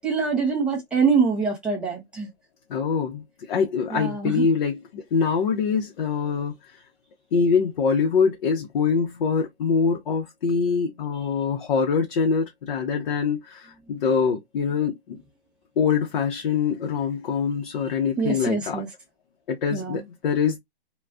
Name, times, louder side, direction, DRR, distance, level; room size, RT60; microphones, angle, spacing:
voice 1, 0.0-2.3 3.9-4.4 18.2-18.9 19.7-20.0, right 5 dB, 5° right, 0.5 m, -24 dB
voice 2, 2.7-6.8 7.3-15.2 15.8-18.8 19.5-20.6, left 6 dB, 50° left, 0.7 m, -24 dB
2.4 x 2.3 x 3.2 m
hypercardioid pair, 145°, 31 cm